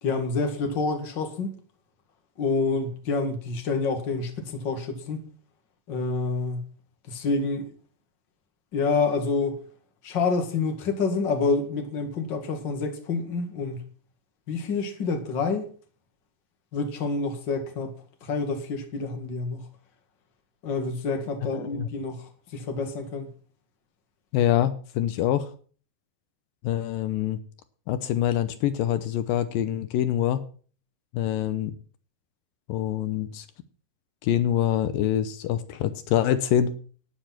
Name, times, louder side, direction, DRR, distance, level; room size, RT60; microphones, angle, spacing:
voice 1, 0.0-1.6 2.4-5.2 5.9-6.7 7.1-7.7 8.7-9.6 10.0-13.8 14.5-15.7 16.7-17.9 18.2-19.7 20.6-23.3, left 4 dB, 40° left, 2.2 m, -28 dB
voice 2, 21.5-21.9 24.3-25.5 26.6-27.4 27.9-30.4 31.1-31.7 32.7-33.5 34.2-36.7, left 11 dB, 80° left, 2.5 m, -25 dB
12.0 x 9.7 x 5.9 m
omnidirectional pair, 4.0 m